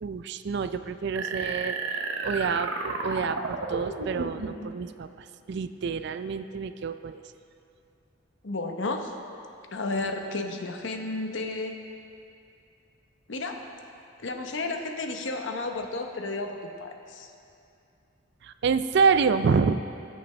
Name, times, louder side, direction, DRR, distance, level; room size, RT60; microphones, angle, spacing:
voice 1, 0.0-1.8 2.2-7.2 18.4-19.8, right 5 dB, 60° right, 11 dB, 0.4 m, -27 dB
sound 1, 1.2-4.7, right 3 dB, 80° right, 0.8 m, -32 dB
voice 2, 8.4-9.1 9.7-11.7 13.3-13.6 14.2-17.3, left 2 dB, 70° left, 4 dB, 0.9 m, -32 dB
19.0 x 6.7 x 3.3 m, 2.6 s
head